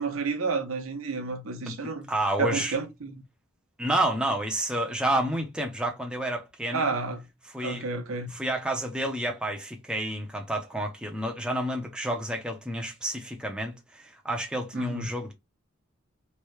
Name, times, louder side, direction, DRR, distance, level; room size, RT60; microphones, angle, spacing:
voice 1, 0.0-2.1 2.4-3.1 6.7-7.3 7.6-8.3 14.7-15.1, right 4 dB, 80° right, 0.7 m, -30 dB
voice 2, 2.1-2.8 3.8-6.9 7.5-7.9 8.3-15.3, right 1 dB, 5° right, 0.6 m, -30 dB
3.1 x 2.7 x 3.2 m
head